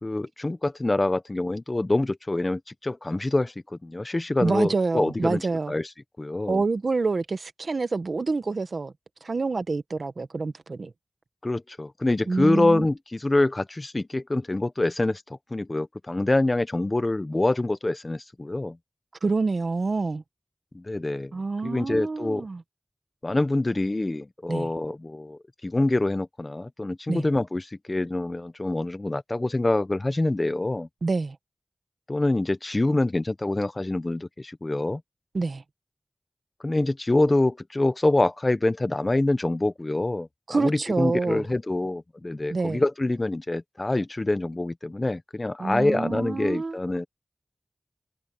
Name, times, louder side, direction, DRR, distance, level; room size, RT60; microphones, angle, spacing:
voice 1, 0.0-5.4 5.7-5.9 6.2-6.6 11.4-18.8 20.7-21.3 21.6-22.4 23.2-30.9 32.1-35.0 36.6-47.0, left 2 dB, 35° left, 1.2 m, -26 dB
voice 2, 4.4-5.7 6.5-8.9 9.2-10.9 12.3-12.9 19.2-20.2 21.3-22.6 24.5-24.7 27.1-27.3 31.0-31.4 35.3-35.6 40.5-41.4 42.5-42.8 45.6-46.8, right 3 dB, 80° right, 1.3 m, -27 dB
wide cardioid pair, 75°, 0 cm